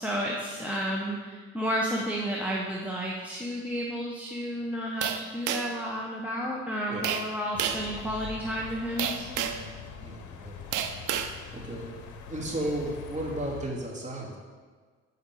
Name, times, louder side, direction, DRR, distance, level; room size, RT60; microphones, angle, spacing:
voice 1, 0.0-9.5, equal, 5° right, -3 dB, 0.9 m, -32 dB
sound 1, 5.0-5.8 7.0-7.3 7.6-7.9 9.0-9.7 10.7-11.3, right 9 dB, 80° right, 0.6 m, -30 dB
sound 2, 7.5-13.7, left 6 dB, 75° left, 0.8 m, -43 dB
voice 2, 10.0-10.6 11.2-11.9 12.3-14.4, right 1 dB, 25° right, -4 dB, 2.2 m, -34 dB
8.2 x 5.0 x 4.8 m, 1.5 s
cardioid pair, 90°, 30 cm